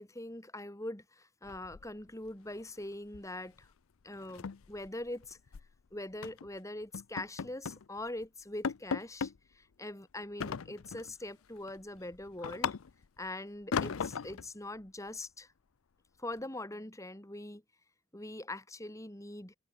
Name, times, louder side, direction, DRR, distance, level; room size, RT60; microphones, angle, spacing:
voice 1, 0.0-3.7 4.0-5.4 5.9-12.7 13.2-15.5 16.2-17.6 18.1-19.5, left 1 dB, 15° left, 2.0 m, -43 dB
sound 1, 1.5-2.3 2.6-2.8 3.1-3.4 3.6-3.7 4.1-5.7 6.2-6.5 6.9-7.9 8.2-8.3 8.6-9.4 10.4-11.1 11.6-13.2 13.7-14.5, left 6 dB, 75° left, 0.5 m, -37 dB
head